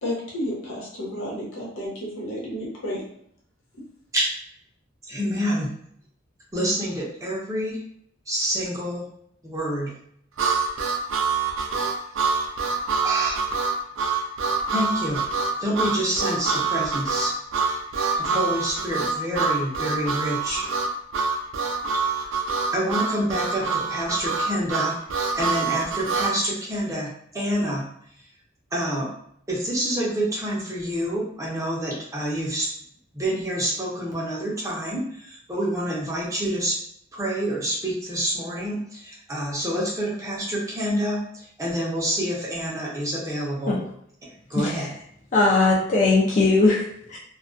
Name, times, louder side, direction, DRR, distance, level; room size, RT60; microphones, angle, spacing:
voice 1, 0.0-3.0, equal, 90° left, -5 dB, 0.9 m, -31 dB
voice 2, 5.0-5.7 6.5-7.8 8.3-9.1 9.4-9.9 11.8-11.9 13.0-13.5 14.7-15.2 15.6-17.3 18.2-20.6 21.9-22.0 22.7-24.9 25.4-27.9 28.7-29.1 29.5-32.7 33.1-36.8 37.1-43.8 44.5-44.9, equal, 15° right, -4 dB, 0.5 m, -27 dB
Harmonica, 10.4-26.4, right 4 dB, 80° right, 0.4 m, -25 dB
voice 3, 44.6-44.9 45.3-47.2, left 3 dB, 40° left, -5 dB, 0.4 m, -20 dB
2.3 x 2.2 x 2.4 m, 0.68 s
head